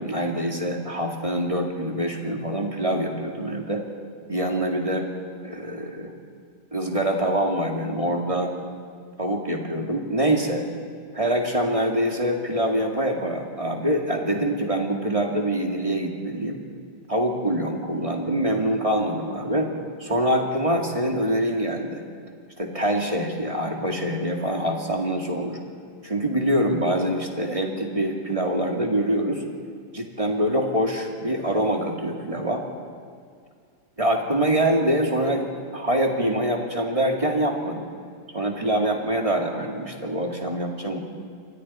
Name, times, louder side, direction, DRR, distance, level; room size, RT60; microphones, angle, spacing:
voice 1, 0.0-3.8 4.3-5.1 5.4-6.1 6.7-8.5 9.2-10.6 11.1-16.7 17.1-19.7 20.0-22.1 22.6-25.6 26.0-29.4 29.9-32.6 34.0-37.9 38.3-41.0, right 1 dB, 15° right, 1 dB, 2.1 m, -25 dB
28.5 x 24.0 x 4.3 m, 2.2 s
omnidirectional pair, 2.2 m